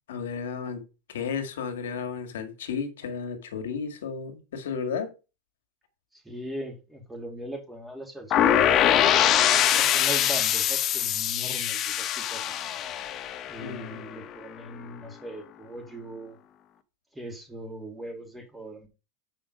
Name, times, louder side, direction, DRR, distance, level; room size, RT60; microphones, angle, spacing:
voice 1, 0.1-0.8 1.1-5.1 13.6-14.0, left 6 dB, 90° left, 1.9 m, -33 dB
voice 2, 6.1-12.5 13.5-16.4 17.1-18.9, right 1 dB, 5° right, 2.2 m, -40 dB
sound 1, 8.3-14.2, left 10 dB, 40° left, 0.9 m, -23 dB
7.0 x 5.4 x 5.1 m
supercardioid pair, 125°, 0 cm